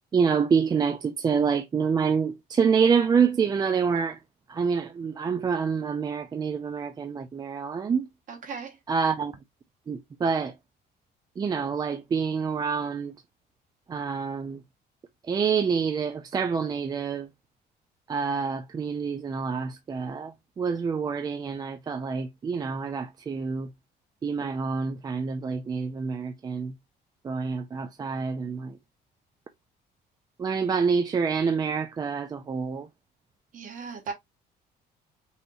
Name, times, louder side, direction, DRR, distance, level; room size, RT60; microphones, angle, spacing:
voice 1, 0.1-4.2 4.5-8.1 8.9-9.3 9.9-10.5 11.4-13.1 13.9-14.6 15.3-17.3 18.1-23.7 24.2-26.8 27.2-28.8 30.4-32.9, right 6 dB, 25° right, 0.4 m, -27 dB
voice 2, 8.3-8.8 33.5-34.1, right 5 dB, 50° right, 1.7 m, -37 dB
5.5 x 3.1 x 2.6 m
cardioid pair, 170°, 17 cm